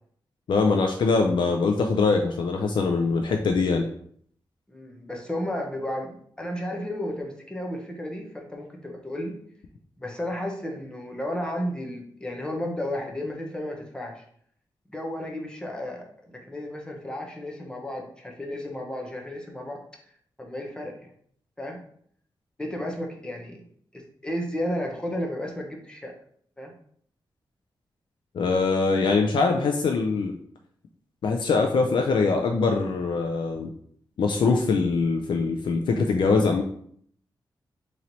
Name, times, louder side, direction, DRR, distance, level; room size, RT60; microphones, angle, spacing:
voice 1, 0.5-3.9 28.3-30.3 31.2-33.7 34.2-36.6, left 4 dB, 70° left, 3 dB, 0.4 m, -23 dB
voice 2, 4.7-9.3 10.0-14.2 14.9-19.8 20.4-20.9 21.6-21.8 22.6-23.6 23.9-26.1 26.6-26.7, left 1 dB, 10° left, 1 dB, 0.7 m, -33 dB
3.0 x 2.9 x 3.9 m, 0.62 s
wide cardioid pair, 140°, 8 cm